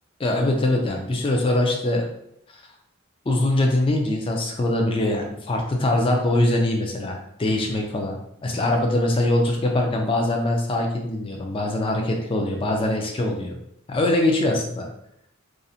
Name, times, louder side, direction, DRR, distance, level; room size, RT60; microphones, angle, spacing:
voice 1, 0.2-2.0 3.3-8.2 8.4-13.5 13.9-14.9, left 1 dB, 25° left, 2 dB, 0.3 m, -22 dB
2.5 x 2.0 x 2.6 m, 0.74 s
head